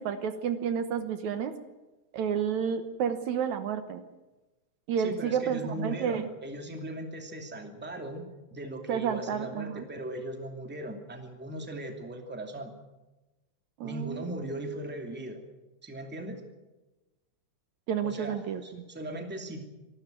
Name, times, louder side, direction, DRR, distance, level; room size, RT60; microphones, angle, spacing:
voice 1, 0.0-1.6 2.1-4.0 4.9-6.3 8.9-9.9 13.8-14.3 17.9-18.6, right 7 dB, 70° right, 9 dB, 2.4 m, -30 dB
voice 2, 5.0-8.2 8.5-12.7 13.8-15.4 15.8-16.4 18.0-19.6, right 1 dB, 5° right, 3 dB, 2.1 m, -38 dB
25.5 x 12.5 x 9.1 m, 1.1 s
omnidirectional pair, 3.6 m